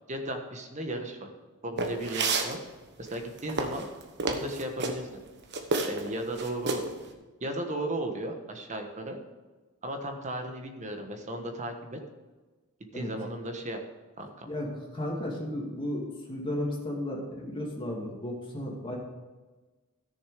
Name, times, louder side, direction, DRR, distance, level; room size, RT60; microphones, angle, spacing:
voice 1, 0.1-1.3 1.6-2.6 3.0-3.9 4.3-5.2 5.9-6.8 7.4-9.2 9.8-12.0 12.9-13.8 14.2-14.5, right 1 dB, 35° right, 4 dB, 1.3 m, -35 dB
sound 1, 1.8-2.5 3.1-5.0 5.5-6.1 6.4-6.9, right 3 dB, 55° right, 1.2 m, -29 dB
voice 2, 14.9-19.0, left 1 dB, 25° left, -2 dB, 2.5 m, -34 dB
13.5 x 6.8 x 5.0 m, 1.3 s
head